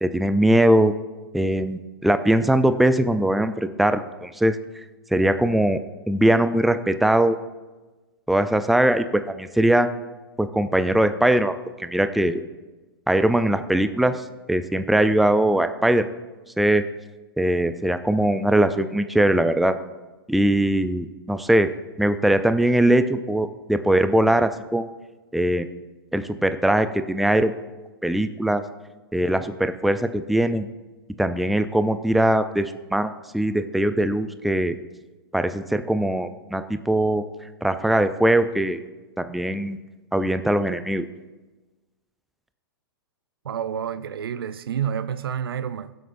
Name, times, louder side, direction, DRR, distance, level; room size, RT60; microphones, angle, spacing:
voice 1, 0.0-0.9 1.3-4.6 5.1-5.8 6.1-7.4 8.3-9.9 10.4-11.5 11.8-12.4 13.1-14.2 14.5-16.1 16.6-16.8 17.4-19.8 20.3-21.7 22.0-24.9 25.3-25.7 26.1-27.6 28.0-28.6 29.1-30.7 31.2-34.8 35.3-37.2 37.6-38.8 39.2-39.8 40.1-41.0, right 1 dB, ahead, 0.4 m, -21 dB
voice 2, 43.4-46.0, right 8 dB, 75° right, 0.5 m, -29 dB
21.0 x 7.9 x 2.6 m
hypercardioid pair, 120°, 12 cm